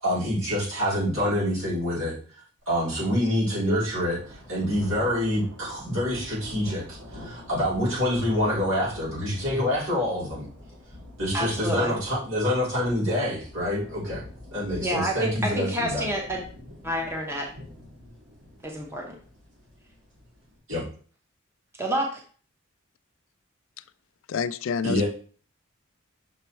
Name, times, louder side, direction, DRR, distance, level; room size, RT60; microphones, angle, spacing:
voice 1, 0.0-2.2 2.7-10.5 11.2-14.2 14.5-16.1 20.7-20.8 24.8-25.0, equal, 75° right, 3.7 m, -26 dB
sound 1, 3.4-20.6, left 1 dB, 55° right, 2.5 m, -47 dB
voice 2, 11.3-11.9 14.8-16.4 16.8-17.5 18.6-19.2 21.8-22.2, equal, 10° right, 0.9 m, -29 dB
voice 3, 24.3-25.0, left 6 dB, 70° left, 0.3 m, -27 dB
6.2 x 4.3 x 4.5 m
head